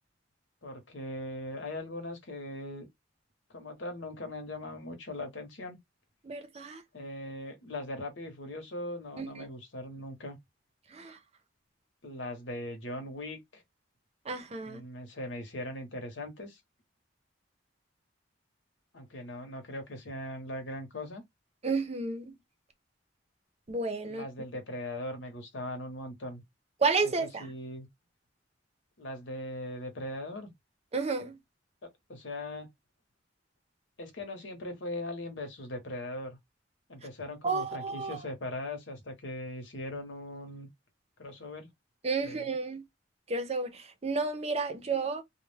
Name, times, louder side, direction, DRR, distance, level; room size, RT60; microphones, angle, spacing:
voice 1, 0.6-2.9 3.5-5.8 6.9-10.4 12.0-13.6 14.6-16.6 18.9-21.2 24.0-26.4 27.0-27.9 29.0-30.5 31.8-32.7 34.0-36.4 36.9-40.7 41.2-41.7 42.2-42.5, left 1 dB, 80° left, 0.9 m, -40 dB
voice 2, 6.2-6.8 9.2-9.3 10.9-11.2 14.3-14.8 21.6-22.4 23.7-24.2 26.8-27.5 30.9-31.3 37.4-38.2 42.0-42.8 43.3-45.2, right 4 dB, 35° right, 0.5 m, -31 dB
2.2 x 2.1 x 3.2 m
head